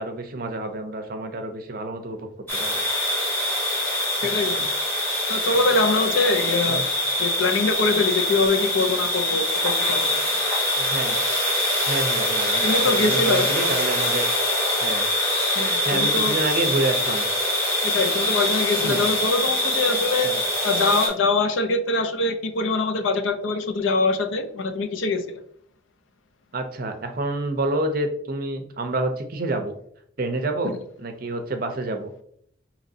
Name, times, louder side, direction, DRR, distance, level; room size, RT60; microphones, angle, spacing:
voice 1, 0.0-2.2 2.5-2.8 5.5-5.7 6.7-6.8 10.8-11.2 11.9-14.2 14.8-15.1 15.9-17.3 18.8-19.0 20.2-20.4 26.5-29.7 30.2-32.1, right 2 dB, 45° right, 6 dB, 0.5 m, -28 dB
sound 1, 2.5-21.1, left 1 dB, 10° left, 1.5 m, -24 dB
voice 2, 4.2-4.7 5.3-6.8 7.2-10.4 12.6-13.5 15.6-16.3 17.8-20.3 20.6-25.4, left 3 dB, 75° left, 8 dB, 0.5 m, -23 dB
4.9 x 2.9 x 2.7 m, 0.67 s
head